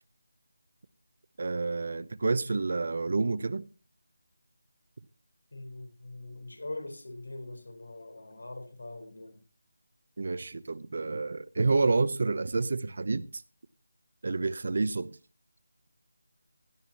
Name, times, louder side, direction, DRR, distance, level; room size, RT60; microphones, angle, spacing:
voice 1, 1.4-3.6 10.2-13.4 14.2-15.2, right 3 dB, 50° right, 0.7 m, -29 dB
voice 2, 5.5-9.4, left 2 dB, 85° left, 3.8 m, -42 dB
16.5 x 11.0 x 2.9 m
figure-of-eight pair, 175°, 0 cm